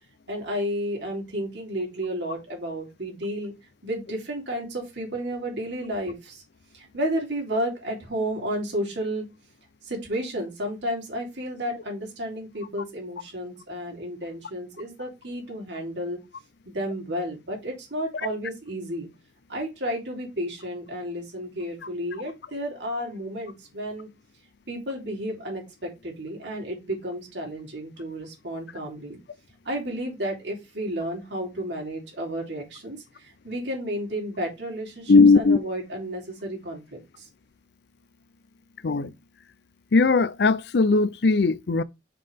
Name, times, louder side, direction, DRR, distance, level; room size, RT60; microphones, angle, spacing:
voice 1, 0.3-3.5 3.8-6.4 6.7-9.2 9.8-16.2 16.6-19.1 19.5-24.1 24.7-29.2 29.6-37.3, equal, 85° right, 3.3 m, -32 dB
voice 2, 35.1-35.6 38.8-39.1 39.9-41.8, left 4 dB, 70° left, 0.5 m, -18 dB
5.9 x 5.6 x 3.5 m
head